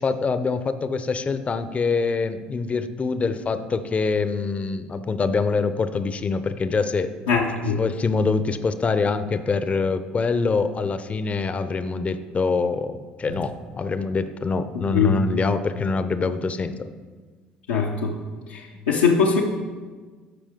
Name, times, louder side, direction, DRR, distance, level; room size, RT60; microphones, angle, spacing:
voice 1, 0.0-7.1 7.8-16.9, left 4 dB, 30° left, 11 dB, 0.6 m, -25 dB
voice 2, 7.3-7.8 14.9-15.1 17.7-18.1 18.5-18.6 18.9-19.4, left 6 dB, 90° left, -3 dB, 0.7 m, -20 dB
13.0 x 5.0 x 3.6 m, 1.4 s
hypercardioid pair, 60°, 4 cm